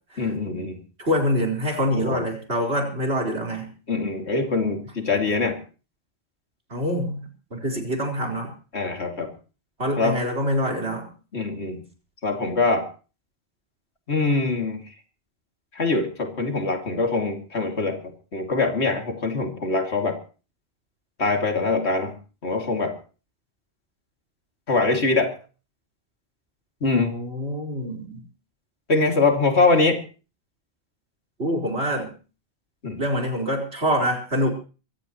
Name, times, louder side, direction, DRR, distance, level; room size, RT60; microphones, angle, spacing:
voice 1, 0.2-0.8 1.9-2.2 3.9-5.6 8.7-9.3 10.0-10.2 11.3-11.8 12.2-12.9 14.1-14.8 15.7-20.2 21.2-22.1 22.4-23.0 24.7-25.3 26.8-27.1 28.9-30.0 32.8-33.0, left 3 dB, 75° left, 3 dB, 2.9 m, -23 dB
voice 2, 1.0-3.7 6.7-7.2 7.5-8.5 9.8-11.1 27.0-28.2 31.4-32.1 33.0-34.5, equal, 70° right, 1 dB, 4.6 m, -25 dB
23.5 x 16.0 x 3.1 m, 0.36 s
omnidirectional pair, 1.1 m